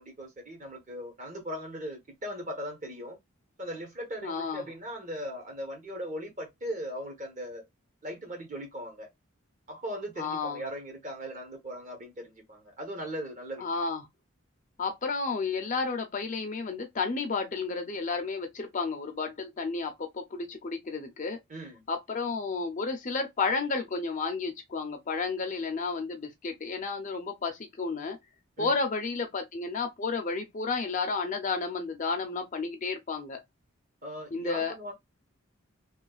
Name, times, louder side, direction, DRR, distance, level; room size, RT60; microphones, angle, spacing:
voice 1, 0.0-3.2 3.6-7.6 8.0-9.1 9.7-13.6 21.5-21.8 28.6-28.7 34.0-34.9, equal, 35° right, 1.0 m, -39 dB
voice 2, 4.2-4.7 10.2-10.6 13.6-14.0 14.8-21.4 21.9-28.2 28.6-33.4 34.3-34.7, left 4 dB, 35° left, 0.5 m, -32 dB
3.1 x 2.2 x 2.3 m
head